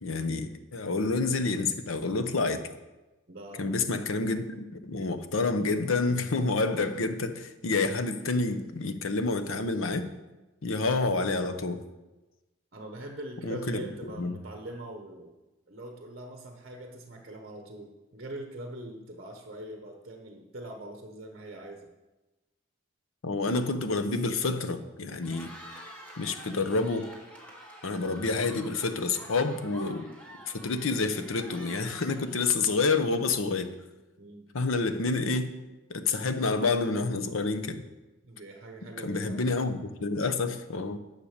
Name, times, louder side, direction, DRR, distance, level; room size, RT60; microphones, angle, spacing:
voice 1, 0.0-2.6 3.6-10.1 10.6-11.8 13.4-13.9 14.2-14.3 23.2-25.5 26.2-27.1 27.8-30.1 30.5-33.7 34.5-35.5 35.9-37.8 39.0-41.0, left 3 dB, 80° left, 10 dB, 0.8 m, -28 dB
voice 2, 3.3-3.8 12.7-15.4 15.7-21.9 34.2-34.5 38.2-39.4, right 1 dB, 45° right, 3 dB, 1.0 m, -42 dB
Cheering, 25.1-33.4, equal, 5° left, 1.5 m, -48 dB
10.0 x 6.6 x 6.5 m, 1.1 s
head